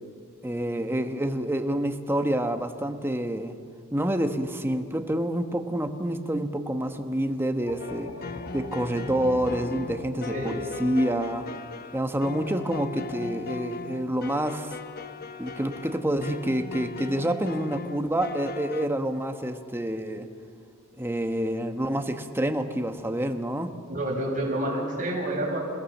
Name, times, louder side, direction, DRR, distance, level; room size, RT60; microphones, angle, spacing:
voice 1, 0.4-3.5 3.9-8.1 8.5-11.5 11.9-14.8 15.4-20.3 21.0-23.7 24.7-24.9, right 1 dB, 10° right, 6 dB, 1.2 m, -28 dB
sound 1, 7.7-12.7, left 1 dB, 75° left, 1.5 m, -42 dB
sound 2, 7.8-18.9, left 4 dB, 50° left, 0.9 m, -38 dB
voice 2, 10.3-10.8 23.9-25.6, right 1 dB, 40° right, -2 dB, 6.8 m, -29 dB
29.0 x 17.5 x 7.3 m, 2.1 s
head